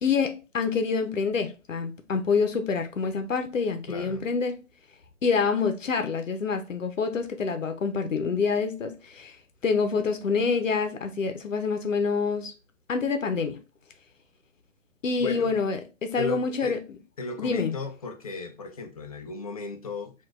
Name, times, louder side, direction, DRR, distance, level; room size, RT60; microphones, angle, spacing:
voice 1, 0.0-4.5 5.2-9.4 9.6-12.5 12.9-13.6 15.0-16.8 17.4-17.8, left 5 dB, 75° left, 0.8 m, -27 dB
voice 2, 3.9-4.3 15.2-15.6 16.2-16.8 17.2-20.1, left 4 dB, 30° left, 0.4 m, -35 dB
5.7 x 2.5 x 2.4 m
figure-of-eight pair, 140°, 39 cm